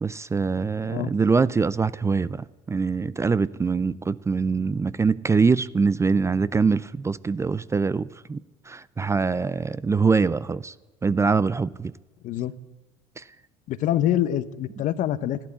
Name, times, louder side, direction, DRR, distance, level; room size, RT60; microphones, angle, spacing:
voice 1, 0.0-8.4 8.7-10.7 11.0-11.9 13.2-13.3, right 4 dB, 20° right, 0.4 m, -23 dB
voice 2, 13.7-15.4, left 12 dB, 55° left, 0.9 m, -25 dB
14.0 x 12.0 x 8.2 m
hypercardioid pair, 75°, 16 cm